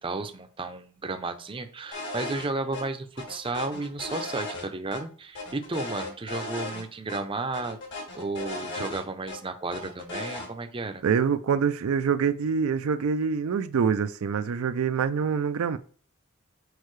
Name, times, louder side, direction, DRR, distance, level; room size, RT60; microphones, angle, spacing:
voice 1, 0.0-7.8 8.1-11.0, right 3 dB, 25° right, 0.6 m, -33 dB
sound 1, 1.9-2.5 2.7-2.8 3.2-5.0 5.3-6.8 7.1-7.2 7.5-9.4 9.7-10.5, left 2 dB, 55° left, 1.9 m, -36 dB
voice 2, 11.0-15.8, right 6 dB, 70° right, 0.4 m, -25 dB
6.5 x 4.6 x 3.1 m
head